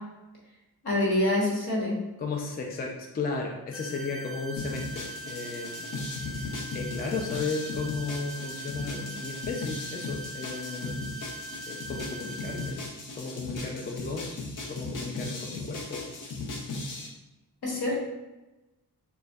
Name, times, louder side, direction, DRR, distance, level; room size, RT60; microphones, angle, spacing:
voice 1, 0.8-2.0 17.6-18.0, left 1 dB, 70° left, -3 dB, 1.3 m, -26 dB
voice 2, 2.2-11.0 11.6-12.9 13.1-14.4 14.7-16.1, left 4 dB, 25° left, 0 dB, 0.3 m, -35 dB
sound 1, 3.7-12.7, right 1 dB, 35° right, 0.4 m, -41 dB
sound 2, 4.6-17.1, left 2 dB, 55° left, 0.7 m, -37 dB
6.5 x 2.2 x 2.3 m, 1.0 s
wide cardioid pair, 155°, 39 cm